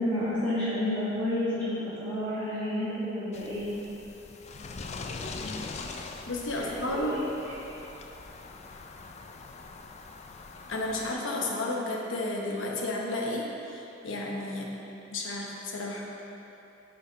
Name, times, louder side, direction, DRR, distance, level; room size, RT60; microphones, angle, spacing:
voice 1, 0.0-3.7 6.5-6.7 7.1-7.5, left 1 dB, 10° left, -14 dB, 1.7 m, -30 dB
sound 1, 3.3-11.1, left 3 dB, 35° left, 0.4 m, -42 dB
voice 2, 6.3-7.2 10.7-14.7 15.1-16.1, left 2 dB, 80° left, -1 dB, 1.0 m, -32 dB
9.1 x 5.0 x 4.0 m, 2.9 s
head